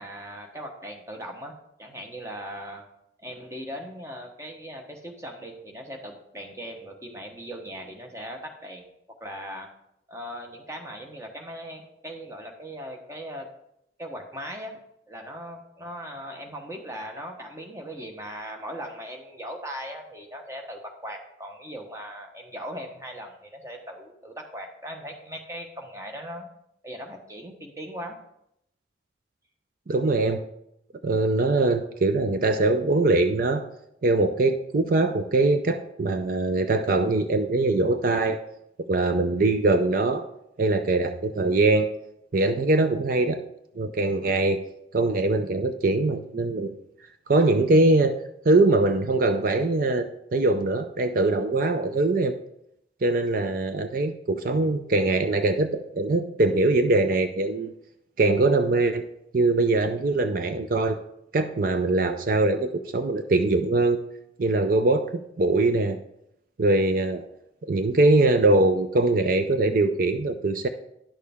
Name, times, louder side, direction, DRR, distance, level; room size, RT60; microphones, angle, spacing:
voice 1, 0.0-1.5 1.8-2.8 3.2-8.8 9.2-9.7 10.1-13.5 14.0-14.8 15.1-26.5 26.8-28.2, equal, 15° right, 2 dB, 1.0 m, -39 dB
voice 2, 29.9-30.4 31.0-33.6 34.0-38.4 38.9-40.2 40.6-41.9 42.3-43.4 43.8-44.6 44.9-46.7 47.3-48.2 48.5-52.3 53.0-57.7 58.2-59.0 59.3-61.0 61.3-64.0 64.4-66.0 66.6-67.3 67.6-70.7, right 2 dB, 50° right, 8 dB, 0.5 m, -22 dB
10.0 x 6.5 x 3.5 m, 0.78 s
head